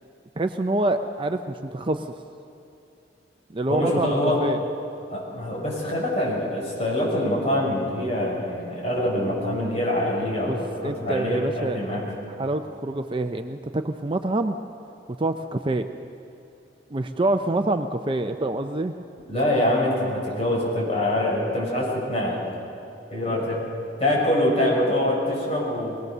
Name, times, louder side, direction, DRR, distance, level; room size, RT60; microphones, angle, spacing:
voice 1, 0.4-2.1 3.5-4.6 10.5-12.0 12.3-14.6 15.2-15.9 16.9-18.9 23.3-23.6, right 2 dB, 30° right, 7 dB, 0.6 m, -26 dB
voice 2, 3.7-4.4 5.1-10.6 10.8-12.1 19.3-22.4 23.1-23.6 24.0-26.0, left 1 dB, 35° left, -4 dB, 7.1 m, -24 dB
22.0 x 19.0 x 6.8 m, 2.8 s
head